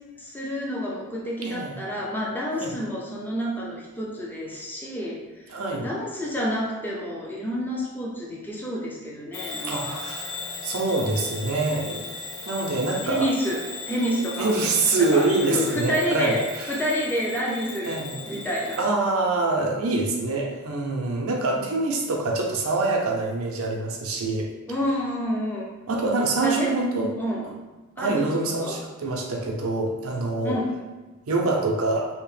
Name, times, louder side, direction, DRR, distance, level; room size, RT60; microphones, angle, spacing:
voice 1, 0.2-5.5 5.8-10.0 13.0-14.5 15.0-18.0 18.3-18.8 21.5-21.7 24.7-25.7 26.4-26.8 27.2-27.5 28.0-28.8 30.4-30.7, equal, 10° left, -4 dB, 0.4 m, -29 dB
voice 2, 1.4-1.8 2.6-2.7 5.5-5.9 9.7-12.0 12.5-13.3 14.4-16.8 17.8-18.3 18.8-24.5 25.9-27.2 28.0-30.6 31.3-32.1, right 3 dB, 75° right, 0 dB, 0.5 m, -25 dB
Bell / Alarm, 9.3-18.9, left 3 dB, 70° left, 0.7 m, -37 dB
2.8 x 2.0 x 3.1 m, 1.2 s
head